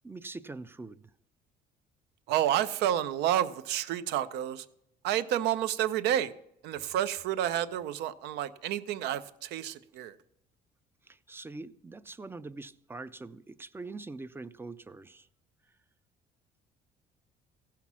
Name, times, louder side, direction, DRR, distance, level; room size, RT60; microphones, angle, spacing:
voice 1, 0.0-1.1 11.0-15.3, right 3 dB, 15° right, 0.4 m, -43 dB
voice 2, 2.3-4.6 5.0-6.3 6.6-10.1, right 11 dB, 85° right, 0.6 m, -30 dB
16.0 x 5.8 x 6.0 m
cardioid pair, 110°, 17 cm